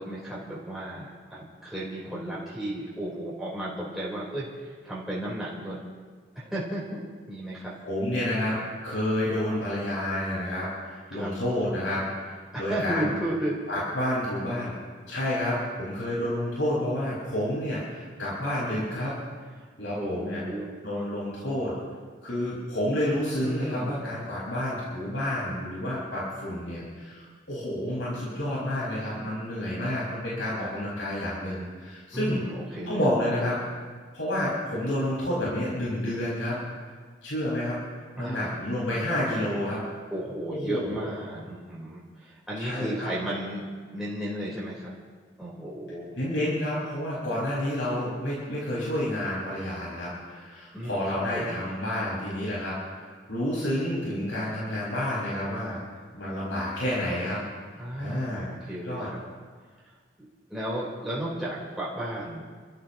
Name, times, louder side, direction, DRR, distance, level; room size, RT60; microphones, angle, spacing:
voice 1, 0.0-5.8 6.3-7.7 11.1-11.3 12.5-13.6 19.6-19.7 20.0-20.7 23.4-24.0 32.1-33.0 38.1-38.6 40.1-44.9 45.4-46.2 50.7-51.0 51.3-51.6 57.8-59.2 60.5-62.6, right 1 dB, ahead, -9 dB, 4.1 m, -34 dB
voice 2, 7.8-13.1 13.7-14.7 15.1-19.2 19.8-20.4 20.8-21.8 22.2-32.4 32.9-33.6 34.1-36.6 37.2-37.8 38.2-39.8 40.5-41.1 42.6-43.1 46.1-55.8 56.1-57.4 58.0-58.5 58.8-59.1, left 1 dB, 80° left, -7 dB, 5.5 m, -29 dB
29.5 x 15.0 x 3.0 m, 1.5 s
head